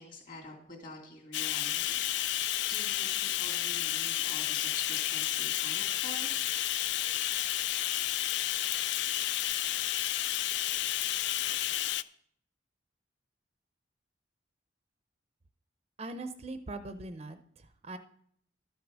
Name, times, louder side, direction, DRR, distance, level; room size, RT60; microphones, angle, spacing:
voice 1, 0.0-2.0 2.7-6.3, left 2 dB, 45° left, 1 dB, 2.7 m, -46 dB
Bathtub (filling or washing), 1.3-12.0, left 13 dB, 65° left, 0.3 m, -31 dB
voice 2, 16.0-18.0, right 2 dB, 30° right, 9 dB, 0.5 m, -41 dB
12.0 x 6.1 x 6.2 m, 0.65 s
head